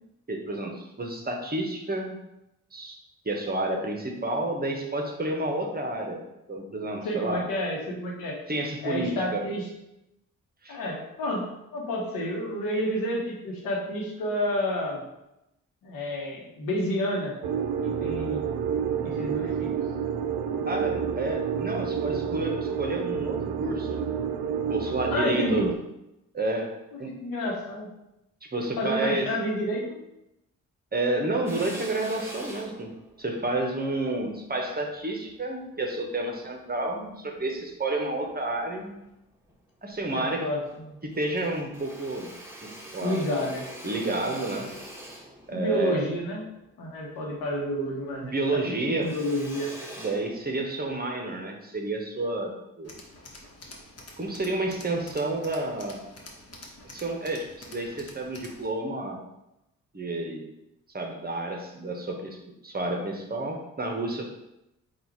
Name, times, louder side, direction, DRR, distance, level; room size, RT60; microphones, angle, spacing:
voice 1, 0.3-2.2 2.7-3.0 3.2-6.2 6.5-7.5 8.5-9.5 10.6-10.8 20.6-24.0 24.7-25.7 26.3-27.2 28.4-29.3 30.9-39.0 39.8-40.5 41.0-42.3 42.6-43.2 43.8-44.7 45.5-46.1 48.2-49.2 50.0-52.9 54.2-56.0 56.8-59.2 59.9-60.5 60.9-62.4 62.6-64.3, right 2 dB, 25° right, 2 dB, 0.9 m, -30 dB
voice 2, 7.0-8.4 8.8-9.7 10.7-15.0 15.8-17.4 17.8-18.5 19.0-19.8 25.1-25.7 26.9-27.9 28.8-30.0 33.9-34.0 40.1-41.0 43.0-43.6 45.5-46.4 46.8-48.6 49.0-49.7, left 1 dB, 85° left, -1 dB, 1.0 m, -30 dB
sound 1, 17.4-25.8, right 7 dB, 75° right, 0.5 m, -29 dB
Drill, 31.5-36.0 36.6-37.7 38.2-39.1 39.5-39.6 39.8-40.8 41.1-47.8 48.1-50.9, right 1 dB, 5° right, 1.1 m, -45 dB
Tools, 52.8-58.7, left 2 dB, 45° left, 1.1 m, -47 dB
3.8 x 2.4 x 4.5 m, 0.89 s
supercardioid pair, 45°, 34 cm